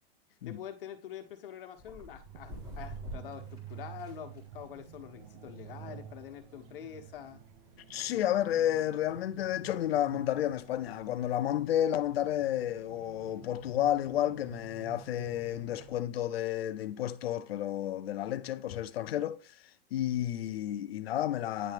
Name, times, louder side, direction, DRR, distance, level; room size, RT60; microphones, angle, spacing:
voice 1, 0.4-7.4, left 9 dB, 65° left, 1.1 m, -45 dB
sound 1, 1.8-16.2, equal, 15° right, 2.0 m, -52 dB
sound 2, 2.3-16.0, right 10 dB, 30° right, 0.6 m, -50 dB
voice 2, 7.9-19.5 19.9-21.7, left 12 dB, 85° left, 0.6 m, -31 dB
9.5 x 3.3 x 3.5 m
supercardioid pair, 155°, 30 cm